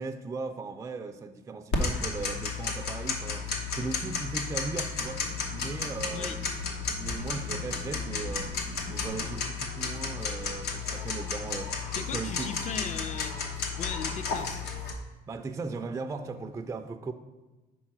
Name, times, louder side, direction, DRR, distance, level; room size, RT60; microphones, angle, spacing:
voice 1, 0.0-6.5 6.9-8.5 8.8-12.6 15.3-17.1, right 4 dB, 15° right, 6 dB, 0.3 m, -38 dB
Tick-tock, 1.7-14.9, left 4 dB, 80° left, 1.0 m, -33 dB
voice 2, 11.9-13.4 13.8-14.7, left 7 dB, 45° left, 12 dB, 0.5 m, -37 dB
5.4 x 4.1 x 6.0 m, 1.2 s
cardioid pair, 110°, 17 cm